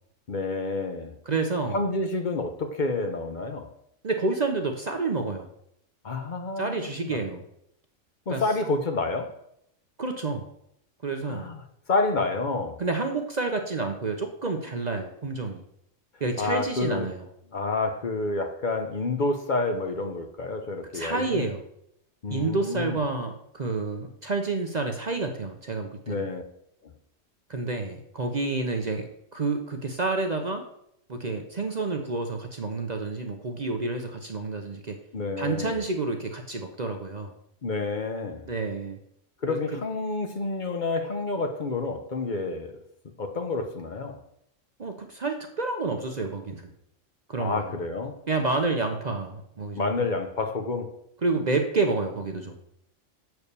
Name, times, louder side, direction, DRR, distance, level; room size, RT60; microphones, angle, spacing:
voice 1, 0.3-1.2 1.7-3.7 6.0-7.2 8.3-9.4 11.3-11.6 11.9-12.8 16.4-17.1 17.5-21.5 22.2-23.0 26.1-26.4 26.8-26.9 35.1-35.8 37.6-38.5 39.4-42.8 43.2-44.2 47.4-48.2 49.8-51.0, left 3 dB, 40° left, 0.8 m, -29 dB
voice 2, 1.3-1.8 4.0-5.5 6.6-7.4 8.3-8.4 10.0-10.4 11.0-11.5 12.8-15.6 16.2-17.2 20.9-21.6 22.3-26.2 27.5-30.6 31.1-35.0 35.4-37.3 38.5-39.0 39.5-39.6 44.8-46.7 47.3-47.6 48.3-49.9 51.2-52.5, right 3 dB, 40° right, 0.7 m, -29 dB
6.9 x 4.6 x 6.7 m
omnidirectional pair, 1.3 m